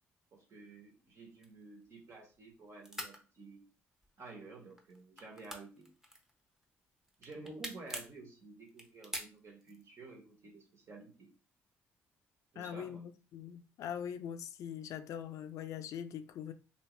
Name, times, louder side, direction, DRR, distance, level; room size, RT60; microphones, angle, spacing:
voice 1, 0.3-3.6 4.2-5.9 7.2-11.3 12.5-13.0, right 3 dB, 55° right, 1.5 m, -51 dB
sound 1, 1.3-2.5 2.8-3.2 3.9-4.4 4.7-6.6 7.0-8.2 8.7-9.9, equal, 10° right, 0.9 m, -44 dB
voice 2, 12.6-16.5, left 9 dB, 70° left, 0.4 m, -42 dB
3.0 x 2.8 x 3.2 m
supercardioid pair, 65°, 6 cm